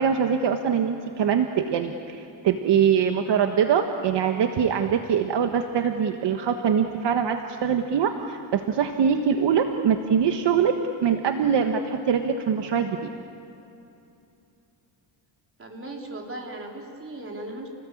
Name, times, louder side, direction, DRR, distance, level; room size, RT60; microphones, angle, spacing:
voice 1, 0.0-13.1, right 7 dB, 60° right, 5 dB, 1.5 m, -23 dB
voice 2, 15.6-17.7, right 1 dB, 30° right, 0 dB, 4.4 m, -37 dB
29.5 x 20.0 x 8.6 m, 2.9 s
cardioid pair, 125°, 47 cm